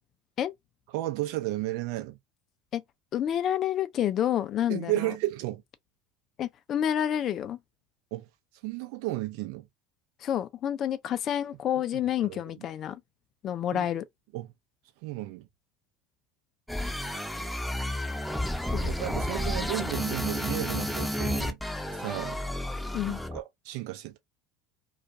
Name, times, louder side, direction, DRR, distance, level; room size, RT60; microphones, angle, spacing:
voice 1, 0.9-2.2 4.7-5.6 8.1-8.3 8.6-9.6 11.8-11.9 12.2-12.7 13.7-13.9 14.3-14.5 15.0-15.5 18.8-21.6 21.9-22.4 23.3-24.2, right 17 dB, 65° right, 0.6 m, -33 dB
voice 2, 3.1-5.1 6.4-7.6 10.2-13.0 13.4-14.0 18.7-18.9 22.9-23.2, left 10 dB, 45° left, 0.4 m, -29 dB
sound 1, 16.7-23.4, left 1 dB, ahead, 0.7 m, -31 dB
2.4 x 2.2 x 2.6 m
hypercardioid pair, 80°, 0 cm